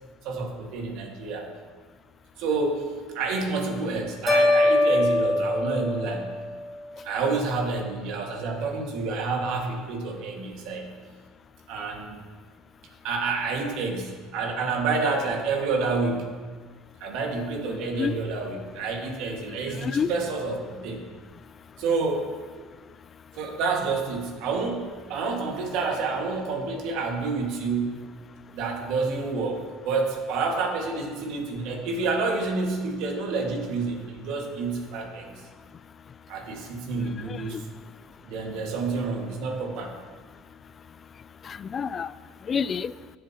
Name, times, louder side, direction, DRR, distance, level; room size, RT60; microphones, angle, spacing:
voice 1, 0.2-1.5 2.4-2.9 3.1-6.3 7.0-10.9 11.7-12.2 13.0-16.3 17.0-21.0 21.8-22.3 23.4-28.0 28.5-35.4 36.3-37.7 38.2-40.0, right 4 dB, 70° right, 2 dB, 1.9 m, -28 dB
sound 1, 4.3-6.6, left 2 dB, 5° left, 2.4 m, -22 dB
voice 2, 19.5-20.1 36.9-37.6 41.4-42.1 42.4-42.9, left 6 dB, 30° left, 17 dB, 0.3 m, -30 dB
16.5 x 7.6 x 2.9 m, 1.5 s
cardioid pair, 120°, 0 cm